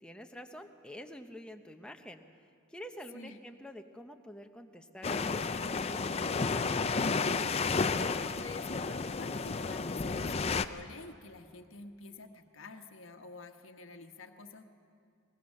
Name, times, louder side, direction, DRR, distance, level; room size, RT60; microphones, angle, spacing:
voice 1, 0.0-2.2 2.7-7.1, equal, 5° left, 5 dB, 0.9 m, -48 dB
sound 1, 5.0-10.6, left 4 dB, 30° left, 0.5 m, -32 dB
voice 2, 8.3-14.6, left 3 dB, 65° left, 4 dB, 1.3 m, -48 dB
22.5 x 20.5 x 6.6 m, 2.4 s
head